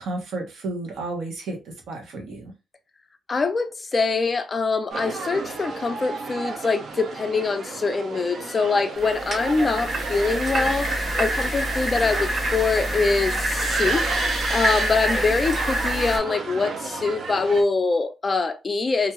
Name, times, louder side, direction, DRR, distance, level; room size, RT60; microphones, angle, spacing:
voice 1, 0.0-1.6 1.9-2.5, right 2 dB, 80° right, 1.0 m, -32 dB
voice 2, 3.3-10.9 11.2-14.0 14.5-19.1, left 4 dB, 30° left, 0.4 m, -24 dB
sound 1, 4.9-17.6, right 4 dB, 60° right, 0.5 m, -33 dB
sound 2, 9.0-16.2, right 1 dB, 40° right, 0.9 m, -26 dB
2.5 x 2.3 x 2.9 m
wide cardioid pair, 155°, 0 cm